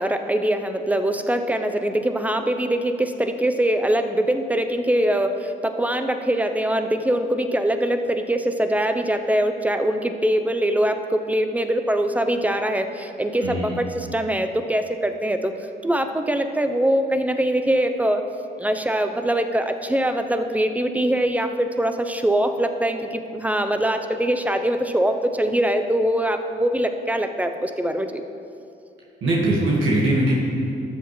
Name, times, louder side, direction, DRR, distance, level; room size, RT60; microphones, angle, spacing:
voice 1, 0.0-15.5 15.8-18.2 18.6-28.2, right 1 dB, 5° right, 7 dB, 0.6 m, -23 dB
voice 2, 13.4-13.7 29.2-30.3, right 1 dB, 75° right, -5 dB, 1.6 m, -21 dB
13.5 x 7.0 x 3.1 m, 2.6 s
cardioid pair, 90°, 20 cm